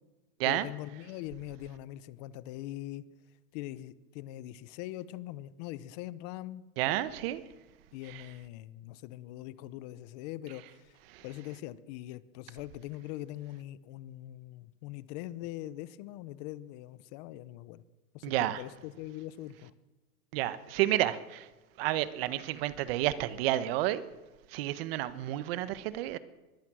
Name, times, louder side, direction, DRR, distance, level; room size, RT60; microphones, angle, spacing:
voice 1, 0.4-3.0 3.5-6.6 7.9-11.0 11.2-17.8 18.1-19.7, left 15 dB, 25° left, 0.8 m, -42 dB
voice 2, 6.8-7.4 8.1-8.2 11.1-11.2 18.2-18.6 20.3-21.5 21.8-24.1 24.5-26.2, right 14 dB, 40° right, 1.4 m, -30 dB
25.0 x 21.5 x 6.3 m
hypercardioid pair, 155°, 47 cm